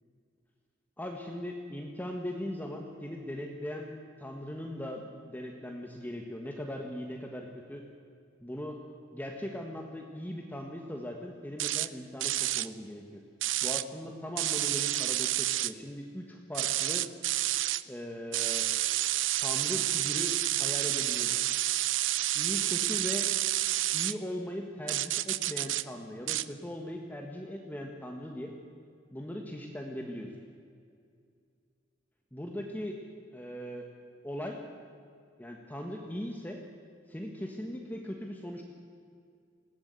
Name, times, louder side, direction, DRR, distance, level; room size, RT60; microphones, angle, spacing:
voice 1, 1.0-7.8 8.4-8.8 9.1-13.2 13.6-17.1 17.8-18.7 19.4-21.4 22.3-23.3 23.9-28.5 29.1-30.3 32.3-33.0 33.3-33.8 34.2-34.6 35.4-36.6 37.1-38.6, left 1 dB, 10° left, 1 dB, 1.5 m, -39 dB
sound 1, 11.6-11.9 12.2-12.7 13.4-13.8 14.4-15.7 16.5-17.8 18.3-24.1 24.9-25.8 26.3-26.5, right 15 dB, 80° right, 0.6 m, -29 dB
20.5 x 17.0 x 8.3 m, 2.3 s
head